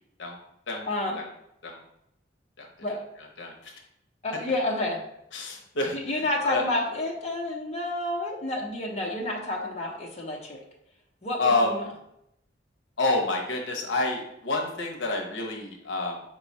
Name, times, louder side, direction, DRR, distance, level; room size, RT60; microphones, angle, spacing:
voice 1, 0.9-1.2 2.8-3.0 4.2-5.0 5.9-10.6 11.2-11.8, left 1 dB, 35° left, -2 dB, 0.8 m, -29 dB
voice 2, 3.4-3.7 5.3-6.7 11.4-11.8 13.0-16.2, left 2 dB, 75° left, 1 dB, 0.8 m, -28 dB
5.3 x 2.3 x 4.1 m, 0.78 s
head